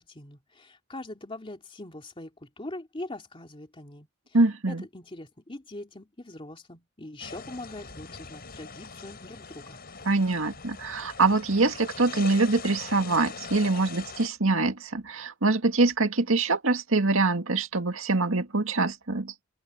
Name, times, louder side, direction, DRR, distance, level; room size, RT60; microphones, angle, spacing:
voice 1, 0.0-4.1 4.7-9.8, left 2 dB, 25° left, 2.7 m, -42 dB
voice 2, 4.3-4.8 10.1-19.3, right 3 dB, 75° right, 2.1 m, -24 dB
sound 1, 7.2-14.3, left 5 dB, 50° left, 5.2 m, -42 dB
open air
head